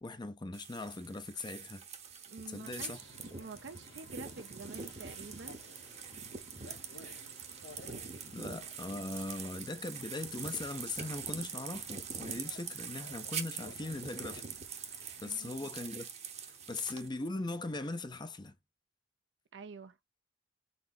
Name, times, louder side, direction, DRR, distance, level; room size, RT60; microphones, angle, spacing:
voice 1, 0.0-1.8 2.5-3.0 8.3-14.5 15.2-16.1 16.7-18.5, left 2 dB, 25° left, 0.6 m, -40 dB
sound 1, 0.5-17.1, right 6 dB, 35° right, 0.9 m, -44 dB
voice 2, 2.3-5.6 15.2-15.7 19.5-20.0, right 4 dB, 65° right, 0.6 m, -48 dB
sound 2, 2.7-17.9, left 3 dB, 75° left, 1.0 m, -58 dB
4.4 x 4.2 x 2.7 m
head